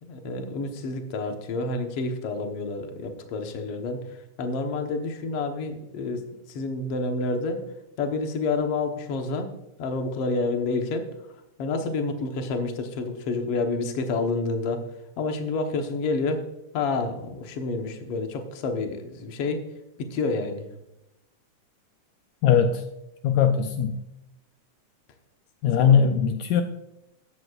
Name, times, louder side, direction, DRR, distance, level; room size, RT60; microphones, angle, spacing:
voice 1, 0.0-4.0 4.4-7.6 8.0-9.5 9.8-11.1 11.6-14.9 15.2-16.4 16.7-19.6 20.0-20.7 25.8-26.0, left 3 dB, 60° left, 5 dB, 1.9 m, -29 dB
voice 2, 22.4-22.8 23.2-23.9 25.6-26.6, left 7 dB, 80° left, 7 dB, 2.0 m, -20 dB
14.0 x 11.0 x 2.4 m, 0.88 s
omnidirectional pair, 3.4 m